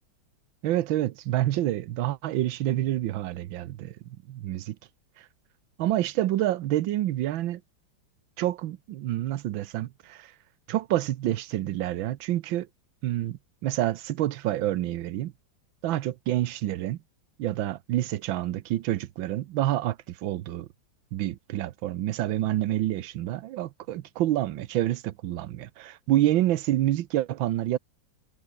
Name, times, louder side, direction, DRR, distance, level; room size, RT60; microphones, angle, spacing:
voice 1, 0.6-3.9 4.3-4.8 5.2-5.3 5.8-7.6 8.4-10.3 10.7-12.7 13.0-15.3 15.8-17.0 17.4-20.7 21.1-27.8, right 14 dB, 85° right, 1.6 m, -28 dB
omnidirectional pair, 2.1 m